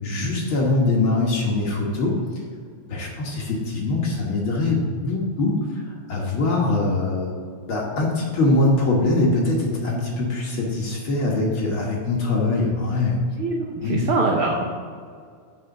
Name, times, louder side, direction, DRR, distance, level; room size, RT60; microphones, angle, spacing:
voice 1, 0.0-2.2 2.9-7.3 7.7-13.2 13.8-14.0, left 2 dB, 55° left, -2 dB, 1.7 m, -23 dB
voice 2, 13.4-14.7, right 3 dB, 75° right, 1 dB, 1.2 m, -24 dB
6.4 x 6.3 x 6.8 m, 2.1 s
omnidirectional pair, 3.4 m